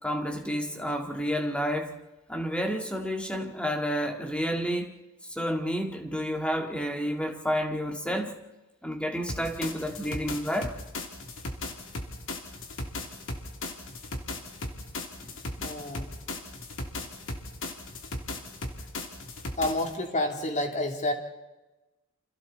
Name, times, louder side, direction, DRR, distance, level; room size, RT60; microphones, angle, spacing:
voice 1, 0.0-2.0 2.3-4.9 5.3-8.4 8.8-10.7 15.2-15.3, equal, 5° left, 2.0 m, -30 dB
sound 1, 9.3-19.9, left 2 dB, 60° left, 3.0 m, -37 dB
voice 2, 15.6-16.1 19.6-21.1, left 1 dB, 35° left, 3.1 m, -29 dB
29.0 x 27.0 x 4.2 m
head